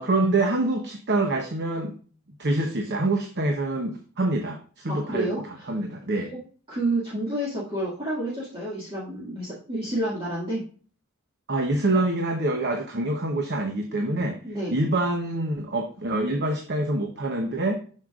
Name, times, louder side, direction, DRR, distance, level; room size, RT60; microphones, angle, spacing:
voice 1, 0.0-1.9 2.4-5.4 5.7-6.3 11.5-14.4 14.7-17.8, right 2 dB, 55° right, 3 dB, 0.9 m, -26 dB
voice 2, 4.9-5.4 6.7-10.6 14.4-14.7, right 1 dB, 25° right, -8 dB, 2.0 m, -29 dB
7.8 x 6.4 x 2.4 m, 0.41 s
head